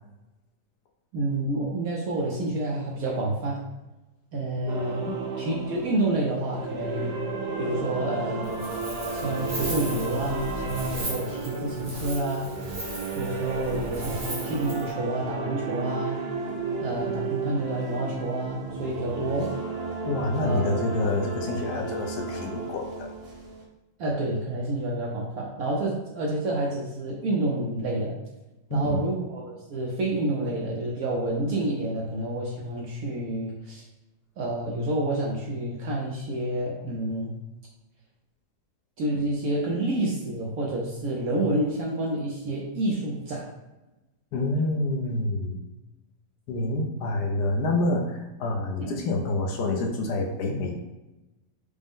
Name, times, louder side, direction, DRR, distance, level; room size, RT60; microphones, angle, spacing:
voice 1, 1.1-3.6 4.3-5.1 5.4-7.2 7.6-8.6 9.1-12.5 13.1-16.2 16.8-19.5 20.4-20.6 24.0-28.1 28.7-33.8 34.4-37.3 39.0-43.4 48.8-48.9, right 1 dB, 65° right, -3 dB, 0.9 m, -29 dB
sound 1, 4.7-23.6, right 4 dB, 90° right, 0.5 m, -33 dB
Wind, 8.4-14.9, right 1 dB, 25° right, 0.7 m, -37 dB
voice 2, 20.0-23.1 28.7-29.0 39.1-39.3 44.3-45.6 46.5-50.7, left 2 dB, 70° left, 1 dB, 1.1 m, -27 dB
5.1 x 2.1 x 3.5 m, 1.0 s
omnidirectional pair, 2.0 m